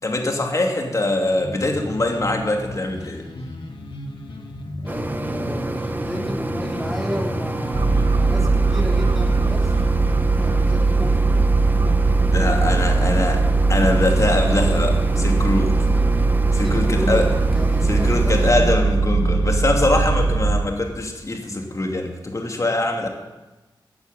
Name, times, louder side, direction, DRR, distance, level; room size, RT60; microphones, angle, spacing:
voice 1, 0.0-3.3 12.3-13.4 13.7-15.8 16.5-17.3 17.9-23.1, left 2 dB, 35° left, 2 dB, 2.8 m, -23 dB
sound 1, 1.4-8.4, left 1 dB, 70° left, 2.0 m, -34 dB
voice 2, 4.8-9.9 10.4-11.3 12.4-13.2 16.5-18.7, equal, ahead, -2 dB, 3.3 m, -32 dB
sound 2, 4.9-18.5, right 2 dB, 20° right, 1.1 m, -29 dB
sound 3, 7.7-20.6, right 3 dB, 55° right, 1.4 m, -19 dB
16.0 x 9.8 x 9.3 m, 1.1 s
wide cardioid pair, 115°, 9 cm